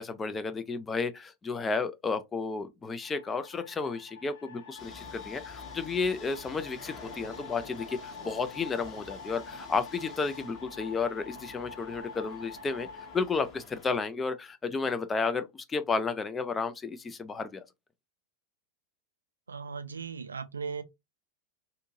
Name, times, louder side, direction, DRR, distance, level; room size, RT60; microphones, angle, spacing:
voice 1, 0.0-12.9 13.1-17.6, left 4 dB, 15° left, 0.4 m, -32 dB
sound 1, 3.0-13.2, left 5 dB, 65° left, 0.6 m, -47 dB
sound 2, 4.8-14.0, left 4 dB, 30° left, 0.9 m, -49 dB
voice 2, 19.5-20.8, right 5 dB, 75° right, 0.3 m, -37 dB
2.6 x 2.6 x 2.6 m
figure-of-eight pair, 90°, 0 cm